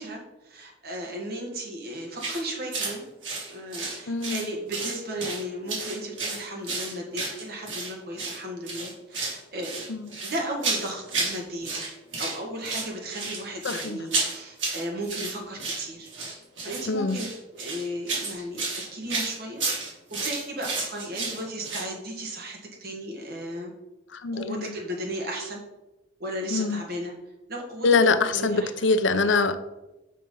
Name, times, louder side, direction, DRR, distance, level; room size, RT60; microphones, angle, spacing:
voice 1, 0.0-3.0 3.5-9.9 10.2-11.8 12.2-16.1 16.6-17.2 17.5-19.6 20.1-23.7 24.3-25.6 26.2-27.1 27.5-28.7, right 1 dB, 55° right, 0 dB, 1.8 m, -35 dB
sound 1, 2.2-2.4 2.7-2.9 3.2-4.5 4.7-5.4 5.7-7.9 8.2-8.4 8.7-9.4 9.6-11.4 11.6-12.4 12.6-21.9, right 3 dB, 80° right, 3.0 m, -31 dB
voice 2, 4.1-4.4 9.9-10.1 13.6-14.0 16.9-17.2 24.1-24.7 26.5-26.8 27.8-29.6, left 4 dB, 75° left, 11 dB, 0.6 m, -24 dB
6.3 x 5.7 x 5.4 m, 1.0 s
head